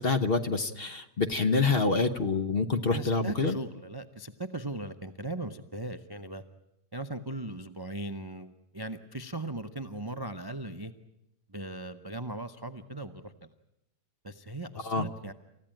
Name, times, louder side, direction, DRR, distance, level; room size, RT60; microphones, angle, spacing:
voice 1, 0.0-3.5 14.8-15.0, left 4 dB, 40° left, 9 dB, 1.0 m, -27 dB
voice 2, 2.9-6.4 6.9-10.9 11.5-13.5 14.2-15.3, right 1 dB, 25° right, 10 dB, 0.4 m, -38 dB
28.5 x 15.5 x 9.1 m, 0.86 s
omnidirectional pair, 1.8 m